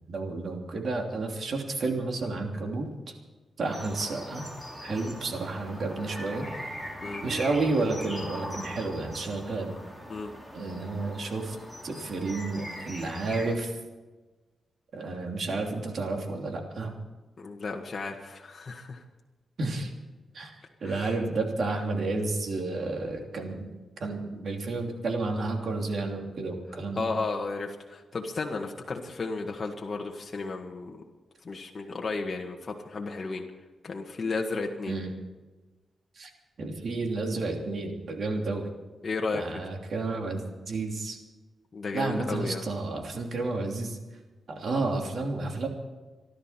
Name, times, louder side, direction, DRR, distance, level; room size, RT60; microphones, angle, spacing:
voice 1, 0.1-2.9 3.6-4.5 4.8-6.5 7.2-9.7 10.5-11.6 11.8-13.7 14.9-16.9 19.6-19.9 20.3-20.6 20.8-23.7 24.0-27.1 34.9-35.1 36.2-36.3 36.6-38.7 39.3-41.2 41.9-44.0 44.5-45.7, right 3 dB, 60° right, 2 dB, 3.0 m, -31 dB
sound 1, 3.6-13.5, equal, 15° right, 4.9 m, -41 dB
voice 2, 17.4-19.0 20.8-21.1 27.0-31.0 31.4-33.4 33.8-35.0 39.0-39.6 41.7-42.6, left 3 dB, 45° left, 1 dB, 1.7 m, -33 dB
26.5 x 11.5 x 4.4 m, 1.2 s
cardioid pair, 85°, 0 cm